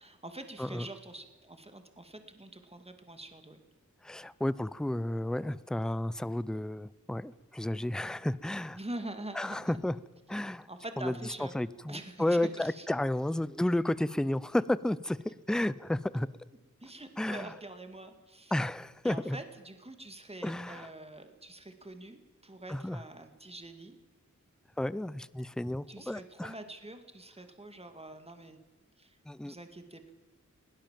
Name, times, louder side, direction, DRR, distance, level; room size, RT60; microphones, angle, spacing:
voice 1, 0.0-3.6 8.7-9.8 10.7-11.5 11.9-12.9 16.8-18.5 19.0-24.0 25.9-28.6 29.0-29.2 29.4-30.1, right 1 dB, 20° right, 7 dB, 2.2 m, -45 dB
voice 2, 4.0-8.8 9.4-10.0 10.3-10.7 11.0-11.1 11.5-15.2 15.5-16.3 17.2-17.5 18.5-19.4 20.4-20.9 22.7-23.0 24.8-26.5 29.3-29.5, left 1 dB, ahead, 18 dB, 0.6 m, -32 dB
21.0 x 17.0 x 7.5 m, 1.2 s
wide cardioid pair, 80°, 31 cm